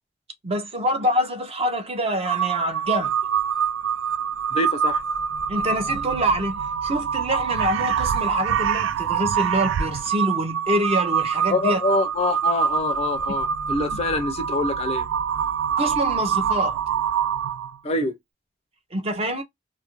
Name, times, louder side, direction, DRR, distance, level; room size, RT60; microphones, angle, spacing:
voice 1, 0.4-3.1 5.5-11.8 15.8-16.8 18.9-19.4, right 1 dB, 30° right, 0.5 m, -25 dB
Crow, 2.3-17.8, right 8 dB, 80° right, 0.3 m, -25 dB
voice 2, 4.5-5.0 11.5-15.1 17.8-18.1, left 2 dB, 30° left, 0.4 m, -25 dB
2.4 x 2.1 x 2.8 m
head